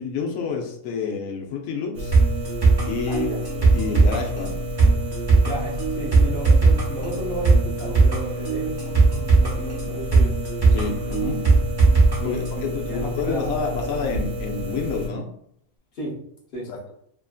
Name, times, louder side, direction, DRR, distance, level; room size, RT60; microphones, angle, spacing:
voice 1, 0.0-2.2 2.8-3.3 3.7-4.6 10.7-11.4 12.2-15.3 16.7-16.9, left 5 dB, 80° left, 1 dB, 1.0 m, -29 dB
sound 1, 1.9-15.1, left 1 dB, 80° right, 1.1 m, -31 dB
sound 2, 2.1-12.2 12.5-12.6, right 3 dB, 30° right, 0.5 m, -19 dB
voice 2, 3.1-3.4 5.4-10.4 12.2-13.9 15.9-16.2 16.5-16.7, right 1 dB, 45° left, -4 dB, 0.9 m, -33 dB
2.9 x 2.5 x 2.3 m, 0.69 s
omnidirectional pair, 1.5 m